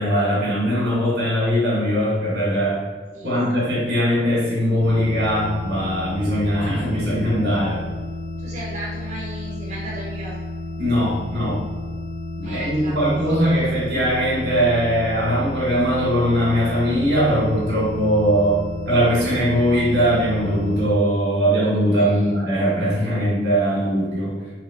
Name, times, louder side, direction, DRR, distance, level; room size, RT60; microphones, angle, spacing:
voice 1, 0.0-2.8 3.2-7.8 10.8-11.6 12.4-24.3, equal, 70° right, -6 dB, 1.2 m, -20 dB
voice 2, 3.1-3.7 8.4-10.4 12.4-13.9 21.9-22.3, right 1 dB, 45° right, -5 dB, 1.2 m, -36 dB
sound 1, 4.8-20.9, left 2 dB, 65° left, 0.4 m, -32 dB
3.5 x 3.0 x 3.5 m, 1.4 s
head